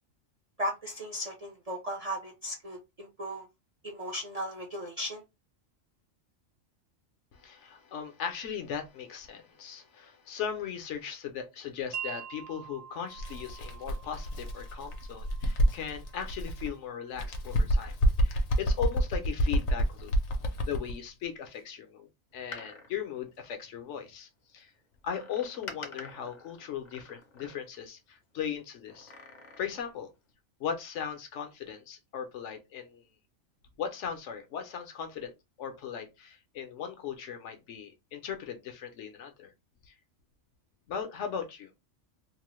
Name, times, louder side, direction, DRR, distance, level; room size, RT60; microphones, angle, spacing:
voice 1, 0.6-3.4 3.8-5.2, equal, 45° right, 0.5 m, -36 dB
voice 2, 7.3-17.9 18.2-20.1 20.6-22.1 22.3-24.3 24.5-24.7 25.0-29.1 29.6-30.1 30.6-33.0 33.8-39.5 39.9-40.0 40.9-41.7, left 8 dB, 70° left, 0.9 m, -38 dB
Wind chime, 11.9-18.0, right 9 dB, 75° right, 1.0 m, -46 dB
Bird, 13.2-16.7 17.1-21.0, equal, 90° left, 1.0 m, -28 dB
Door, 22.3-24.1 25.1-27.9 28.9-30.0 30.3-30.4, left 3 dB, 45° left, 0.6 m, -48 dB
2.9 x 2.0 x 3.0 m
omnidirectional pair, 1.3 m